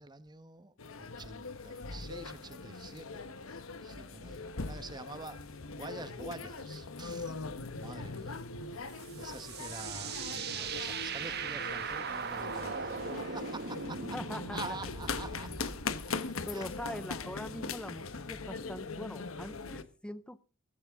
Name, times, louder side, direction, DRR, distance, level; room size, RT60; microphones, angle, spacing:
voice 1, 0.0-7.4 7.7-14.2 14.5-16.1 16.5-17.0, right 3 dB, 20° right, 1.1 m, -47 dB
sound 1, 0.8-19.8, left 4 dB, 85° left, 1.2 m, -41 dB
sound 2, 8.9-16.1, right 6 dB, 50° right, 1.3 m, -39 dB
voice 2, 14.1-14.6 16.5-20.4, left 1 dB, 5° left, 0.6 m, -42 dB
16.0 x 15.5 x 3.6 m
head